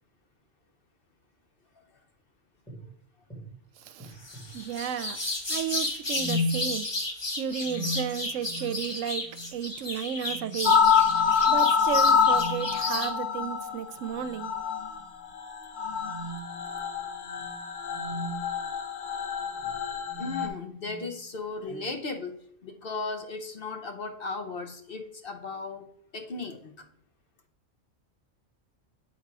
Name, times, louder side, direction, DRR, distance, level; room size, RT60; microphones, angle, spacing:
sound 1, 2.7-2.8 3.3-3.5 4.0-4.5 6.1-6.7 7.6-8.9 9.2-9.5 10.2-10.6 11.0-11.3 12.2-12.8 13.9-14.4 14.8-15.0 15.9-18.5 19.3-19.6 20.0-21.1, left 1 dB, ahead, 2.0 m, -37 dB
sound 2, 4.2-13.1, left 2 dB, 25° left, 0.9 m, -33 dB
voice 1, 4.5-5.2 5.5-6.9 7.4-10.8 11.5-14.5, right 9 dB, 80° right, 0.9 m, -33 dB
voice 2, 7.8-8.8 9.4-9.6 9.9-10.3 11.3-11.4 19.6-25.9 26.1-26.7, left 3 dB, 50° left, 0.9 m, -37 dB
sound 3, 10.7-20.5, left 6 dB, 75° left, 1.2 m, -26 dB
8.5 x 3.9 x 4.7 m
omnidirectional pair, 1.3 m